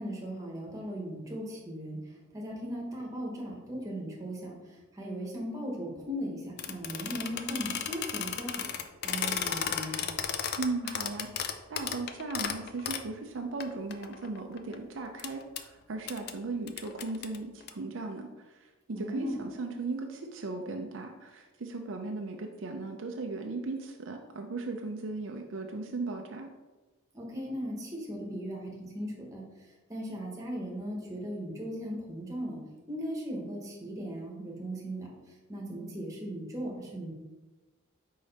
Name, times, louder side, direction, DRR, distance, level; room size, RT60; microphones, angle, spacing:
voice 1, 0.0-2.0 2.3-4.5 5.0-8.7 9.0-10.0 18.9-19.4 27.1-29.4 29.9-32.6 32.9-35.1 35.5-37.1, equal, 15° right, -2 dB, 1.2 m, -37 dB
sound 1, 6.6-13.1 13.6-13.7 13.9-14.7 15.2-15.3 15.6-15.7 16.1-16.3 16.7-17.7, left 8 dB, 50° left, 0.4 m, -34 dB
voice 2, 10.6-26.5, right 3 dB, 60° right, 3 dB, 0.5 m, -37 dB
5.0 x 4.7 x 4.1 m, 1.2 s
head